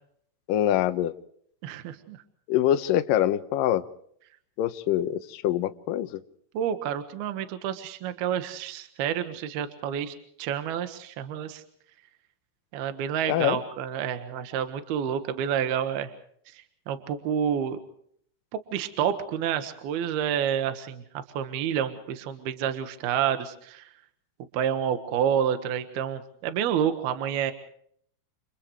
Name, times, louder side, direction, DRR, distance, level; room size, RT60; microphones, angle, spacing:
voice 1, 0.5-1.1 2.5-3.9 4.6-6.2 13.3-13.6, left 12 dB, 85° left, 9 dB, 1.9 m, -24 dB
voice 2, 1.6-2.2 6.5-11.6 12.7-16.1 16.5-17.8 18.5-23.9 24.5-27.5, right 9 dB, 65° right, 9 dB, 2.9 m, -29 dB
29.5 x 29.5 x 3.2 m, 0.65 s
omnidirectional pair, 5.6 m